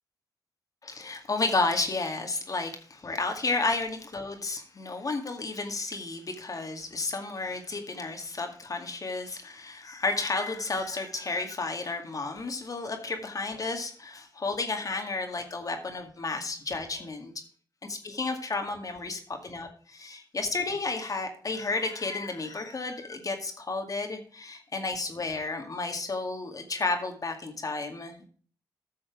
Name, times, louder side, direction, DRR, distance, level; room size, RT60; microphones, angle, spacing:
voice 1, 0.8-17.3 17.8-28.2, left 3 dB, 45° left, 4 dB, 2.1 m, -32 dB
11.0 x 6.3 x 4.9 m, 0.43 s
cardioid pair, 55°, 8 cm